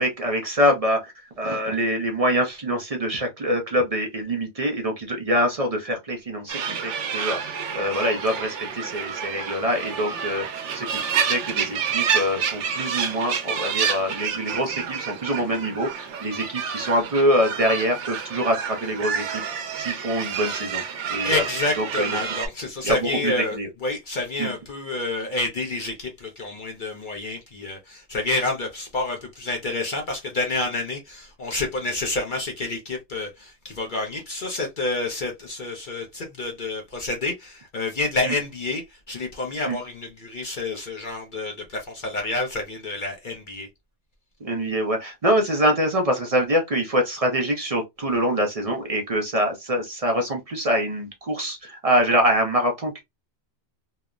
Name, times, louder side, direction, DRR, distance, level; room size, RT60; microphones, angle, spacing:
voice 1, 0.0-19.4 19.8-20.8 21.1-21.4 21.8-22.2 22.8-23.7 24.4-24.5 38.2-38.3 39.7-39.8 44.4-53.0, equal, 45° right, 0.5 m, -25 dB
sound 1, 6.5-22.5, right 7 dB, 85° right, 1.0 m, -29 dB
voice 2, 21.2-43.7, left 2 dB, 50° left, 0.7 m, -29 dB
2.9 x 2.0 x 2.3 m
omnidirectional pair, 1.2 m